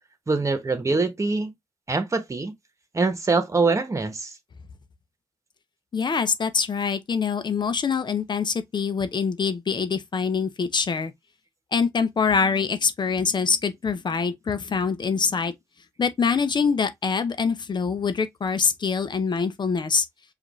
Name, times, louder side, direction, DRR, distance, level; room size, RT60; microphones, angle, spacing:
voice 1, 0.3-1.5 1.9-2.5 2.9-4.3, right 3 dB, 30° right, 1.2 m, -24 dB
voice 2, 5.9-11.1 11.7-15.5 16.0-20.0, left 5 dB, 50° left, 0.7 m, -24 dB
5.0 x 2.6 x 3.1 m
cardioid pair, 60°, 10 cm